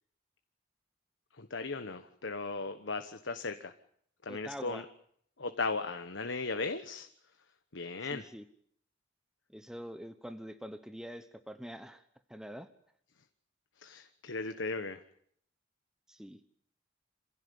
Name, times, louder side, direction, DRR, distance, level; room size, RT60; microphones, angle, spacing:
voice 1, 1.4-3.7 4.2-4.8 5.4-7.1 7.7-8.3 13.8-15.0, left 3 dB, 85° left, 8 dB, 1.3 m, -37 dB
voice 2, 4.3-4.9 8.1-8.4 9.5-12.0 12.3-12.7 16.1-16.4, equal, 5° right, 9 dB, 1.0 m, -45 dB
27.0 x 16.5 x 9.5 m, 0.67 s
head